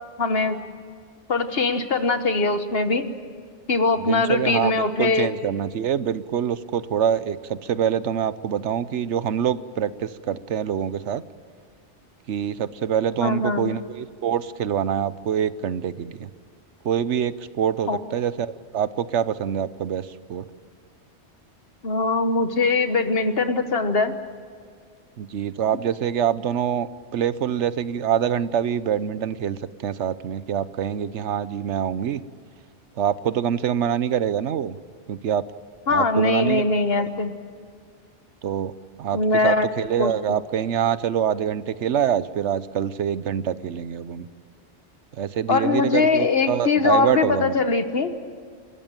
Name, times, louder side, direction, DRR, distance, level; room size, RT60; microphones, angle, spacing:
voice 1, 0.2-0.6 1.3-3.0 3.7-5.3 13.2-13.7 17.9-18.0 21.8-24.1 35.9-37.3 39.1-39.7 40.0-40.1 45.5-48.1, left 3 dB, 55° left, 9 dB, 1.5 m, -21 dB
voice 2, 4.1-11.2 12.3-16.3 16.8-20.5 25.2-32.2 33.0-34.8 35.1-35.5 35.9-36.7 37.0-37.1 38.4-38.7 39.0-44.3 45.2-47.6, right 9 dB, 80° right, 15 dB, 1.1 m, -25 dB
29.0 x 14.0 x 8.9 m, 2.1 s
omnidirectional pair, 1.2 m